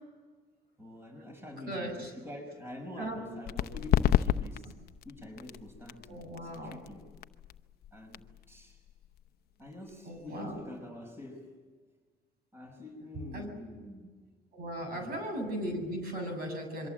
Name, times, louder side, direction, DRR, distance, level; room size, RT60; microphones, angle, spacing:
voice 1, 0.8-4.7 5.0-7.1 7.9-8.8 9.6-11.5 12.5-14.2 14.9-15.2, left 1 dB, 15° right, 3 dB, 5.5 m, -46 dB
voice 2, 1.7-2.1 3.0-3.2 6.1-6.8 10.0-10.6 13.3-13.5 14.5-16.9, right 1 dB, 60° right, 5 dB, 7.5 m, -37 dB
sound 1, 3.4-10.8, left 12 dB, 65° left, 0.8 m, -33 dB
27.0 x 23.5 x 7.7 m, 1.4 s
cardioid pair, 110°, 17 cm